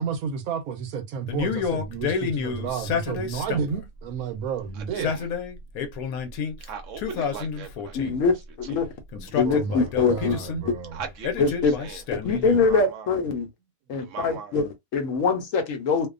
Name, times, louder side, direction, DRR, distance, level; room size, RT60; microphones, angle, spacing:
voice 1, 0.0-5.1 9.4-11.0, right 6 dB, 85° right, 1.0 m, -31 dB
Male speech man speaking, 1.3-3.8 4.8-6.5 7.0-8.3 9.1-10.6 11.2-12.7, left 6 dB, 90° left, 1.1 m, -29 dB
voice 2, 4.7-5.3 6.7-8.2 8.6-8.9 10.9-12.3 12.6-13.1 14.0-14.6, right 6 dB, 70° right, 0.9 m, -39 dB
voice 3, 7.9-8.9 9.2-10.7 11.4-11.8 12.1-13.5 13.9-16.1, left 4 dB, 70° left, 1.0 m, -24 dB
2.6 x 2.1 x 2.4 m
omnidirectional pair, 1.5 m